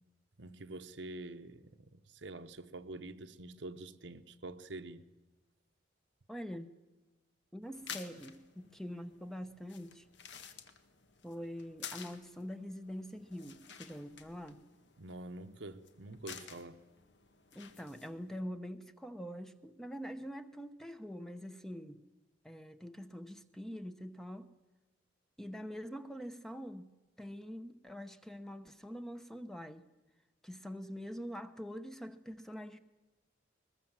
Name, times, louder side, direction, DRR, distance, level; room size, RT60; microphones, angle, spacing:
voice 1, 0.4-5.1 15.0-16.8, right 2 dB, 75° right, 1.1 m, -46 dB
voice 2, 6.3-6.7 7.5-10.0 11.2-14.6 17.5-22.0 22.4-24.5 25.4-29.8 30.4-32.8, equal, ahead, 0.9 m, -44 dB
sound 1, 7.6-18.4, left 7 dB, 70° left, 1.9 m, -52 dB
22.0 x 21.5 x 7.4 m
head